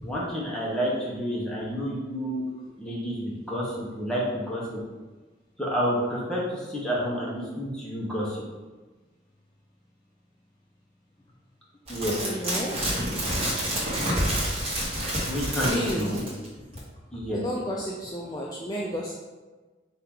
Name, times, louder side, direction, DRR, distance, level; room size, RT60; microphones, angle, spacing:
voice 1, 0.0-2.4 2.8-4.8 5.6-8.4 11.9-12.2 15.3-16.2 17.1-17.4, equal, 5° left, -6 dB, 1.0 m, -29 dB
sound 1, 11.9-16.5 16.8-16.9, right 1 dB, 35° right, 1.4 m, -28 dB
voice 2, 12.2-12.8 15.6-16.2 16.7-16.8 17.3-19.1, equal, 20° left, -3 dB, 0.4 m, -31 dB
4.5 x 2.9 x 3.7 m, 1.3 s
head